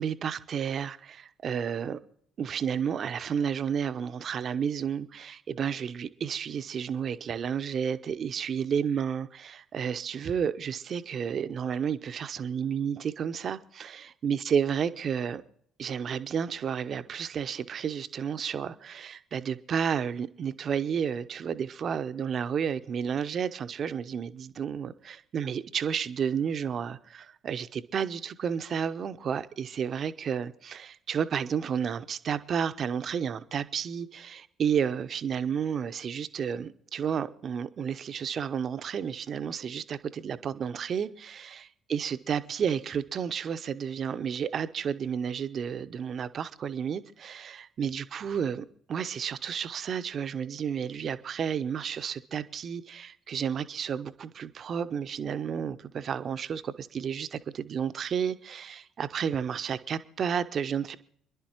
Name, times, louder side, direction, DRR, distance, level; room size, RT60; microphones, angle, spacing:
voice 1, 0.0-2.0 2.4-15.4 15.8-61.0, right 7 dB, 45° right, 0.8 m, -31 dB
28.5 x 11.0 x 3.0 m
figure-of-eight pair, 50°, 0 cm